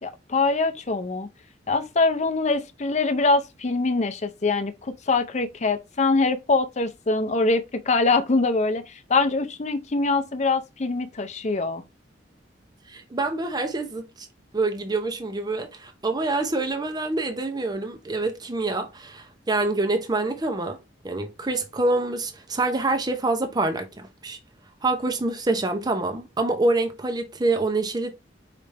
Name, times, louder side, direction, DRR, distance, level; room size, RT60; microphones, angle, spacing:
voice 1, 0.0-1.3 1.7-11.8, left 3 dB, 40° left, 0.6 m, -23 dB
voice 2, 12.9-14.3 14.5-20.8 21.0-24.4 24.8-28.1, right 2 dB, 20° right, 0.6 m, -26 dB
4.9 x 3.2 x 3.3 m
head